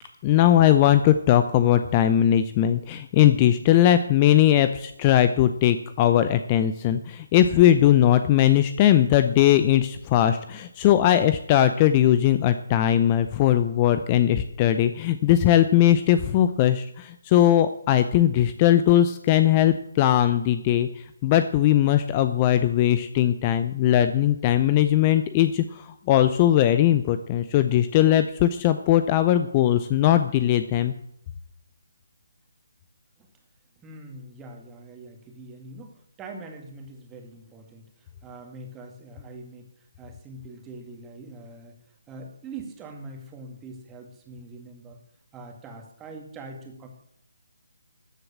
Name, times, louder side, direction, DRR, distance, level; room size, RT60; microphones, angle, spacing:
voice 1, 0.2-30.9, left 11 dB, 25° left, 11 dB, 0.6 m, -20 dB
voice 2, 33.8-45.0 45.3-46.9, right 2 dB, 15° right, 3 dB, 2.2 m, -43 dB
13.5 x 7.8 x 7.4 m, 0.73 s
figure-of-eight pair, 150°, 0 cm